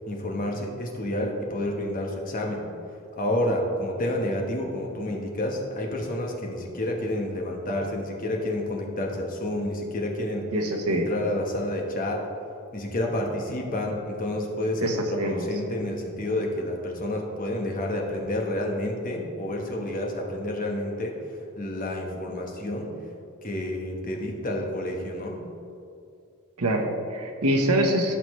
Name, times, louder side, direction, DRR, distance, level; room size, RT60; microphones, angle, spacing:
voice 1, 0.1-2.7 3.2-10.5 10.9-12.3 12.7-22.9 23.4-25.4, left 1 dB, 40° left, 1 dB, 1.2 m, -29 dB
voice 2, 10.5-11.1 14.8-15.5 26.6-28.1, right 1 dB, 85° right, 3 dB, 1.2 m, -25 dB
15.5 x 5.7 x 3.2 m, 2.5 s
head